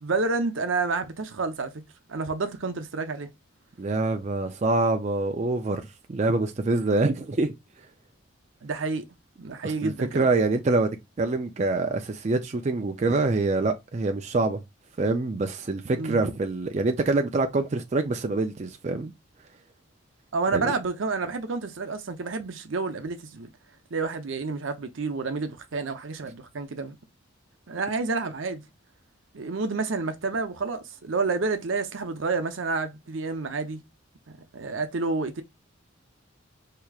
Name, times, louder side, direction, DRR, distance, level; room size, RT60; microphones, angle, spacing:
voice 1, 0.0-1.7 2.1-3.3 8.6-9.1 9.4-10.3 16.0-16.2 20.3-23.5 23.9-27.0 27.7-28.6 29.3-33.8 34.3-35.4, right 4 dB, 75° right, 0.7 m, -29 dB
voice 2, 3.8-5.8 6.1-7.5 9.6-10.9 11.2-14.6 15.0-19.1 20.5-20.7, right 3 dB, 35° right, 0.4 m, -25 dB
4.6 x 2.8 x 2.3 m
head